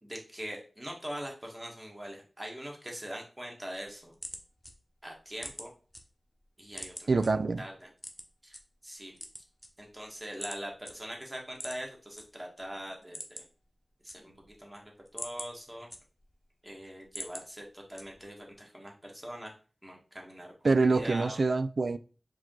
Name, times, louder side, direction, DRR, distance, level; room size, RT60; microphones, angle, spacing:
voice 1, 0.0-4.1 5.0-5.7 6.6-7.1 7.6-7.9 8.4-8.6 8.8-9.2 9.8-13.4 14.0-14.3 14.6-15.9 16.6-19.5 19.8-21.4, equal, 20° right, 1.5 m, -42 dB
sound 1, 3.8-6.0 6.4-7.3 8.0-8.6 9.1-10.0 10.4-10.6 10.8-10.9 11.5-12.2 12.6-12.7 13.0-13.6 13.9-14.6 14.9-16.4 16.8-17.4 17.9-18.4, left 1 dB, 15° left, 0.9 m, -43 dB
voice 2, 7.1-7.6 20.6-22.0, right 3 dB, 65° right, 0.3 m, -25 dB
4.8 x 2.9 x 3.7 m
wide cardioid pair, 65°, 0 cm